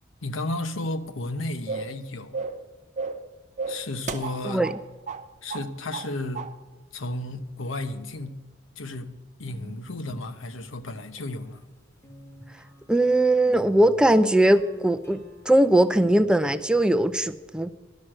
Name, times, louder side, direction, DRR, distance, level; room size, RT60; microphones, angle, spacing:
voice 1, 0.2-2.5 3.7-4.7 5.4-6.5 6.9-8.4 8.8-11.6, left 2 dB, 75° left, 0.9 m, -33 dB
sound 1, 1.7-2.0 2.3-2.6 3.0-3.3 3.6-4.8 5.1-5.2 5.5-6.1 6.3-6.5, right 4 dB, 40° right, 0.8 m, -33 dB
sound 2, 9.4-11.7 12.0-15.9, equal, 15° left, 1.3 m, -49 dB
voice 2, 12.9-15.2 15.5-17.7, right 1 dB, 5° right, 0.4 m, -20 dB
11.5 x 6.3 x 8.8 m
head